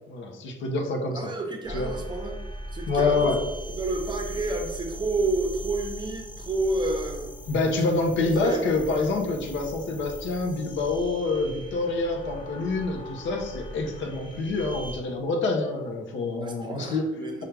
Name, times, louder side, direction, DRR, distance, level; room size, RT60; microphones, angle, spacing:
voice 1, 0.1-1.3 1.7-1.9 2.9-3.4 7.5-17.1, left 3 dB, 70° left, 2 dB, 0.7 m, -27 dB
voice 2, 1.1-2.4 2.7-3.3 3.8-7.3 8.2-8.7 16.4-17.4, right 2 dB, 25° right, 3 dB, 0.7 m, -30 dB
sound 1, 1.6-15.0, equal, 25° left, 0.7 m, -39 dB
4.6 x 2.3 x 3.2 m, 1.1 s
cardioid pair, 90°, 20 cm